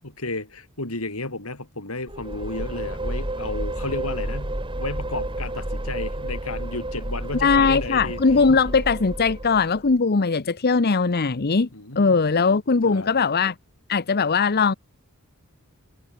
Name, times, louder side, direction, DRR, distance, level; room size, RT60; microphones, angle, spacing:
voice 1, 0.0-8.2 11.7-12.4 12.9-13.3, left 2 dB, 80° left, 5.5 m, -33 dB
sound 1, 2.1-9.9, right 1 dB, 25° right, 3.2 m, -31 dB
voice 2, 7.4-11.7 12.0-13.5 13.9-14.7, left 4 dB, 45° left, 0.8 m, -20 dB
head